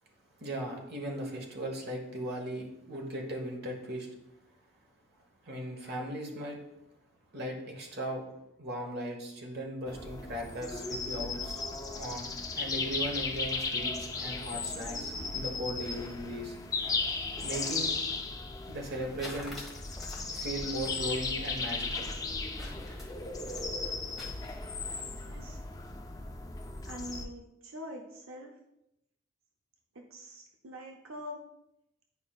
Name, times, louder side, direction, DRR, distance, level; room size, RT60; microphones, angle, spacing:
voice 1, 0.4-4.1 5.4-6.6 7.3-8.2 8.6-11.6 12.0-16.6 17.4-18.0 18.7-19.6 20.3-22.1, right 1 dB, 55° right, 1 dB, 1.3 m, -38 dB
sound 1, 9.9-27.2, left 3 dB, 20° left, 0.5 m, -36 dB
sound 2, 18.8-24.8, left 2 dB, ahead, 1.4 m, -47 dB
voice 2, 24.9-25.6 26.9-28.6 29.9-31.4, equal, 90° right, 2 dB, 0.7 m, -45 dB
9.6 x 5.0 x 2.4 m, 0.85 s
head